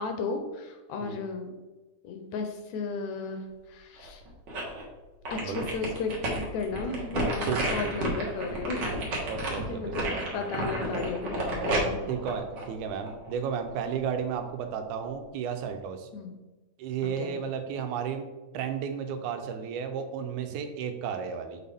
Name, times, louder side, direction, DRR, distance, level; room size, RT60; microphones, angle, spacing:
voice 1, 0.0-1.5 2.0-4.2 5.3-9.0 9.7-12.0 16.1-16.4 17.0-17.4, left 4 dB, 75° left, 5 dB, 1.9 m, -34 dB
sound 1, 4.0-4.8 5.2-13.3 13.7-13.8, right 1 dB, 50° right, 1.3 m, -31 dB
voice 2, 7.4-7.9 9.3-10.2 12.1-16.1 16.8-18.3 18.5-21.6, right 7 dB, 80° right, 7 dB, 2.1 m, -33 dB
6.9 x 4.4 x 3.4 m, 1.2 s
omnidirectional pair, 3.5 m